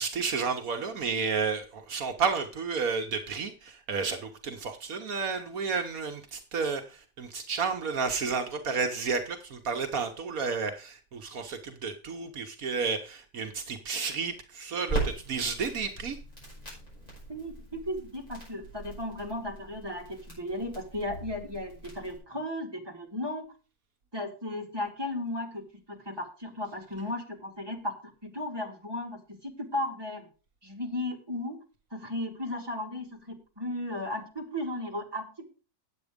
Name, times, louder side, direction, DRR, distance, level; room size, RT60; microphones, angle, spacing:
voice 1, 0.0-16.2, right 5 dB, 70° right, 5 dB, 1.5 m, -31 dB
Crackle, 14.9-22.2, right 3 dB, 25° left, 6.4 m, -39 dB
voice 2, 17.3-23.4 24.1-30.3 30.6-31.6 31.9-35.4, left 1 dB, 15° right, 0 dB, 2.4 m, -35 dB
9.2 x 8.2 x 5.1 m, 0.34 s
omnidirectional pair, 1.5 m